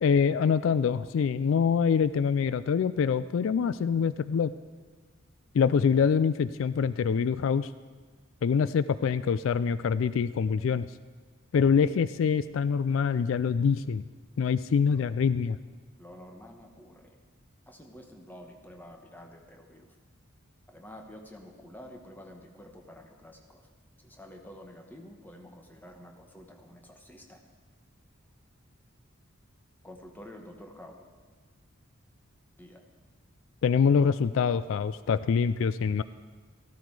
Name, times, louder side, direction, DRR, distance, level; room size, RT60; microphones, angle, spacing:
voice 1, 0.0-4.5 5.5-7.7 8.4-10.9 11.5-14.0 14.4-15.6 33.6-36.0, left 6 dB, 65° left, 15 dB, 0.3 m, -25 dB
voice 2, 16.0-17.2 17.7-20.0 20.7-23.7 24.0-27.4 29.8-31.0 32.6-32.8, left 1 dB, 10° left, 3 dB, 1.2 m, -49 dB
13.5 x 13.0 x 4.7 m, 1.4 s
head